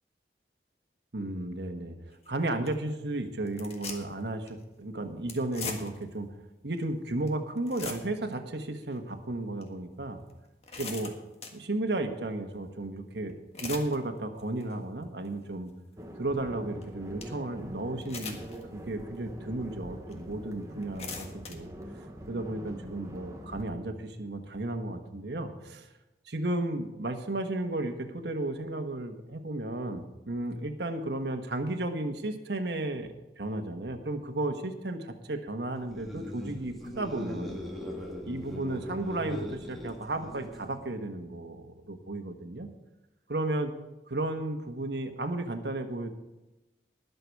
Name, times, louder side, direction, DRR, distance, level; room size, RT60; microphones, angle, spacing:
voice 1, 1.1-6.3 6.6-10.2 10.8-11.1 11.5-15.7 16.2-18.4 18.7-21.7 22.3-25.9 26.2-37.6 38.2-42.7 43.3-43.7 44.1-46.1, right 2 dB, 75° right, 5 dB, 1.4 m, -34 dB
sound 1, 2.1-2.3 2.7-2.8 3.5-4.2 4.5-4.6 5.3-6.1 6.7-6.8 7.3-7.4 7.6-8.3 8.8-8.9 9.6-9.7 10.3-11.6 13.3-14.0 14.4-14.7 15.2-15.3 16.8-16.9 17.2-17.3 18.0-18.6 19.1-19.2 20.1-20.2 20.7-21.5, left 4 dB, 35° left, 1.6 m, -40 dB
sound 2, 16.0-23.6, equal, 20° right, 1.1 m, -44 dB
sound 3, 35.8-40.9, left 1 dB, ahead, 2.0 m, -40 dB
20.0 x 6.9 x 4.7 m, 1.0 s
head